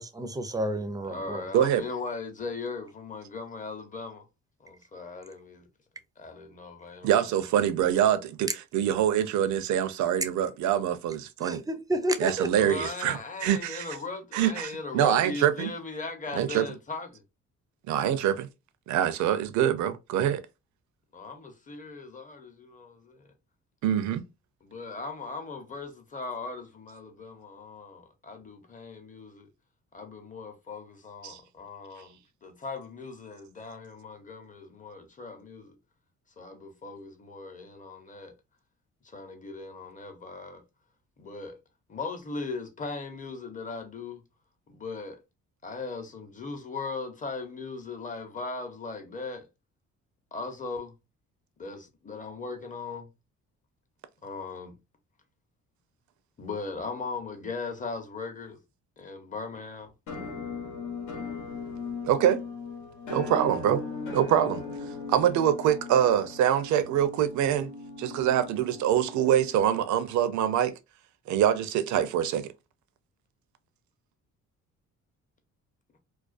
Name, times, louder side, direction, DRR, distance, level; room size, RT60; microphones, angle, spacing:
voice 1, 0.0-1.4 11.4-12.5, right 1 dB, 15° right, 0.4 m, -30 dB
voice 2, 1.1-4.2 4.6-5.7 6.2-7.5 12.4-17.2 21.1-23.3 24.6-29.5 29.9-35.8 36.4-38.3 39.0-40.6 41.2-41.6 41.9-44.2 44.7-45.2 45.6-49.5 50.3-50.9 51.6-53.1 54.2-54.8 56.4-58.6 59.0-59.9, left 4 dB, 25° left, 0.7 m, -38 dB
voice 3, 7.0-11.6 12.2-13.9 14.3-15.7 16.3-16.6 17.9-18.5 18.9-20.4 23.8-24.2 31.2-31.4 62.1-62.4 63.1-63.8 64.1-64.6 65.1-67.7 68.0-70.7 71.3-72.5, right 10 dB, 70° right, 0.5 m, -25 dB
Musical instrument, 60.1-69.9, left 4 dB, 80° left, 0.9 m, -38 dB
2.4 x 2.2 x 2.4 m
cardioid pair, 90°, 30 cm